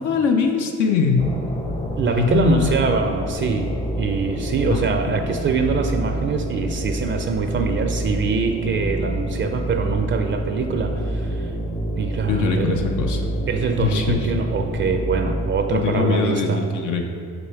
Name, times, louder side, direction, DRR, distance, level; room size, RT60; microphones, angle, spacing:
voice 1, 0.0-1.3 2.2-2.7 4.7-5.2 12.3-13.2 13.8-14.2 15.7-16.5 16.7-17.1, left 5 dB, 75° left, 3 dB, 0.6 m, -21 dB
sound 1, 1.2-15.5, right 1 dB, 20° left, 0.6 m, -27 dB
voice 2, 2.0-11.5 12.0-12.8 13.5-16.7, right 5 dB, 40° right, 5 dB, 0.4 m, -24 dB
6.8 x 3.1 x 4.5 m, 2.4 s
cardioid pair, 90°, 30 cm